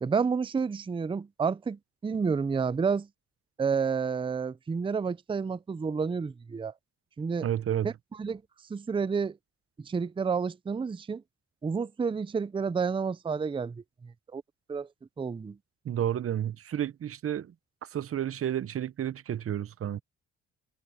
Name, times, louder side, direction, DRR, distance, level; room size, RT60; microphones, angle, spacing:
voice 1, 0.0-3.1 3.6-6.7 7.2-7.5 7.8-7.9 8.2-8.4 8.7-9.4 9.8-11.2 11.6-14.4 14.7-14.9 15.2-15.6, right 5 dB, 15° right, 0.5 m, -30 dB
voice 2, 7.4-7.9 15.8-17.5 17.9-20.0, right 10 dB, 50° right, 0.9 m, -31 dB
cardioid pair, 90°, 30 cm